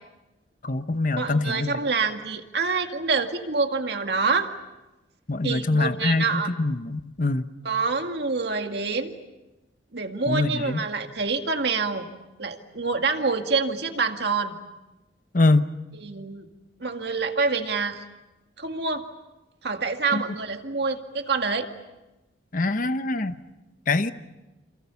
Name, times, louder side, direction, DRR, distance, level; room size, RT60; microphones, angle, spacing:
voice 1, 0.6-1.8 5.3-7.4 10.3-10.8 15.3-15.7 20.1-20.2 22.5-23.4 23.9-24.1, left 2 dB, 45° left, 11 dB, 0.9 m, -24 dB
voice 2, 1.2-4.5 5.4-6.5 7.6-9.1 9.9-12.1 12.4-14.6 16.0-16.5 16.8-18.0 18.6-19.1 19.6-21.7, right 4 dB, 60° right, 5 dB, 2.1 m, -26 dB
28.5 x 28.0 x 7.1 m, 1.0 s
head